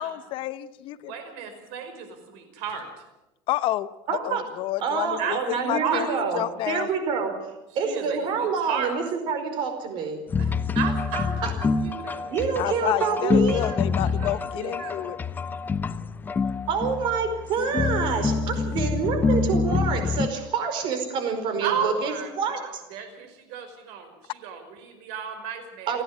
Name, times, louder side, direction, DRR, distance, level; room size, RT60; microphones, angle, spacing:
voice 1, 0.0-1.1 3.5-3.9 4.2-5.4 5.7-6.1 6.3-6.9 12.6-15.2, left 15 dB, 55° left, 14 dB, 0.9 m, -29 dB
voice 2, 1.0-2.9 5.1-6.1 7.8-8.9 10.4-12.4 13.6-15.3 18.4-18.8 21.6-26.0, right 7 dB, 75° right, 7 dB, 5.2 m, -34 dB
voice 3, 4.1-4.4 4.8-7.3 7.7-10.2 11.4-11.5 12.3-13.6 16.7-22.8 25.9-26.0, right 5 dB, 50° right, 7 dB, 4.9 m, -27 dB
sound 1, 10.3-20.3, left 4 dB, 20° left, 0.7 m, -26 dB
30.0 x 10.0 x 9.7 m, 0.98 s
cardioid pair, 140°, 10 cm